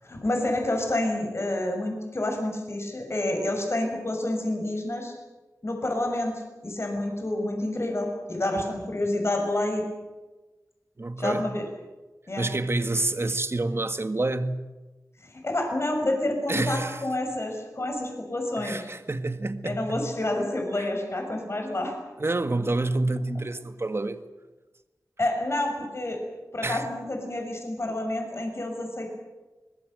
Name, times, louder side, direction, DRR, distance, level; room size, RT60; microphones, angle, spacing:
voice 1, 0.0-5.1 5.6-9.8 11.2-11.7 12.3-12.5 15.3-18.9 19.6-21.9 25.2-26.2 26.5-29.1, left 1 dB, 45° left, 6.4 m, -28 dB
voice 2, 11.0-11.5 12.4-14.6 16.5-17.0 18.6-20.0 22.2-24.2 26.6-26.9, right 2 dB, 40° right, 1.8 m, -28 dB
25.5 x 20.5 x 7.9 m
wide cardioid pair, 55°, 6 cm